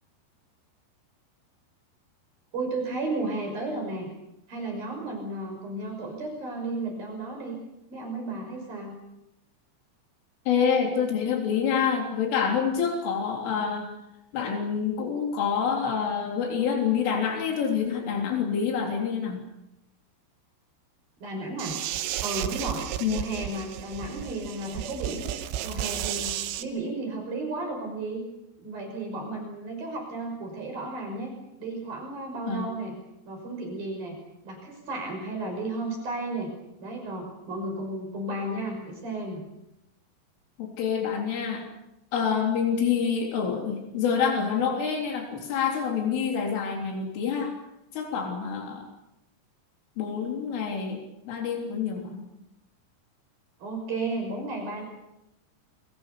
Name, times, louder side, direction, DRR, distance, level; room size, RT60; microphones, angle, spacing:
voice 1, 2.5-4.1 4.5-7.6 7.9-9.0 21.2-21.8 22.2-25.3 25.6-28.2 28.6-31.3 31.6-32.9 33.3-34.2 34.4-36.5 36.8-39.4 53.6-54.9, right 2 dB, 45° right, 2 dB, 7.4 m, -33 dB
voice 2, 10.5-13.9 14.3-19.4 23.0-23.3 32.5-32.7 40.6-41.7 42.1-47.5 47.9-48.9 50.0-52.3, left 7 dB, 80° left, 2 dB, 6.0 m, -27 dB
sound 1, 21.6-26.6, right 11 dB, 85° right, 3.7 m, -33 dB
28.5 x 24.0 x 6.9 m, 0.86 s
omnidirectional pair, 5.6 m